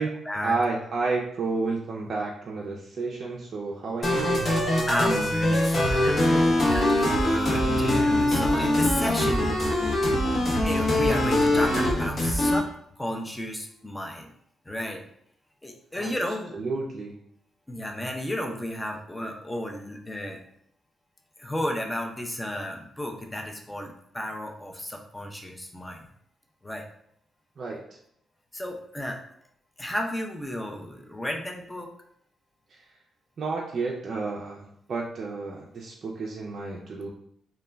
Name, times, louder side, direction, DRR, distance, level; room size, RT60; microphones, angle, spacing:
voice 1, 0.4-4.4 15.9-16.1 16.5-17.1 27.6-27.8 32.7-33.0 33.4-37.1, right 3 dB, 50° right, -3 dB, 0.4 m, -31 dB
sound 1, 4.0-12.6, left 1 dB, 40° left, 0.7 m, -23 dB
voice 2, 4.9-10.0 10.6-12.7 13.0-14.3 14.7-15.0 15.6-16.6 17.7-20.4 21.4-26.1 26.6-26.9 28.5-29.2 29.8-31.9, equal, 10° left, 1 dB, 0.4 m, -33 dB
2.1 x 2.1 x 3.4 m, 0.69 s
cardioid pair, 85°, 0 cm